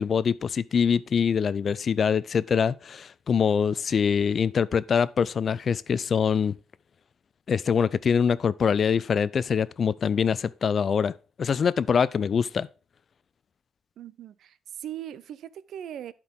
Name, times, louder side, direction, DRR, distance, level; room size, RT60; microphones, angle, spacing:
voice 1, 0.0-6.6 7.5-12.7, left 6 dB, 50° left, 0.4 m, -24 dB
voice 2, 14.0-16.1, right 10 dB, 70° right, 0.4 m, -39 dB
11.0 x 4.5 x 3.7 m
cardioid pair, 90°, 0 cm